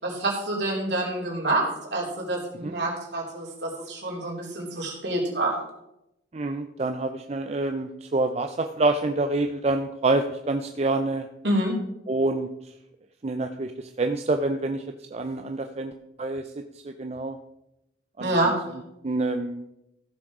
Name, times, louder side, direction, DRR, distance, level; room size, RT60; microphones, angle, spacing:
voice 1, 0.0-5.6 11.4-11.7 18.2-18.6, right 1 dB, 60° right, -2 dB, 3.4 m, -27 dB
voice 2, 6.3-11.3 12.1-12.5 13.2-14.8 15.1-15.9 16.2-17.4 18.2-18.3 19.0-19.7, right 2 dB, 35° right, 6 dB, 0.5 m, -27 dB
15.0 x 6.4 x 4.8 m, 0.85 s
head